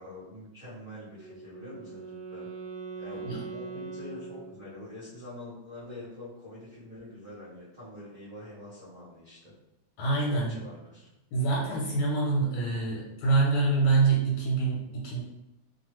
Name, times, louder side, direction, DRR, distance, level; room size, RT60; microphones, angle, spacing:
voice 1, 0.0-2.5 3.0-9.5 10.2-11.1, left 2 dB, 40° right, -10 dB, 0.8 m, -45 dB
Wind instrument woodwind instrument, 1.1-5.1, right 5 dB, 75° right, 0.9 m, -41 dB
voice 2, 3.1-3.4 10.0-10.6 11.3-15.2, right 3 dB, 90° left, -3 dB, 1.4 m, -26 dB
3.0 x 2.4 x 2.9 m, 0.90 s
omnidirectional pair, 2.2 m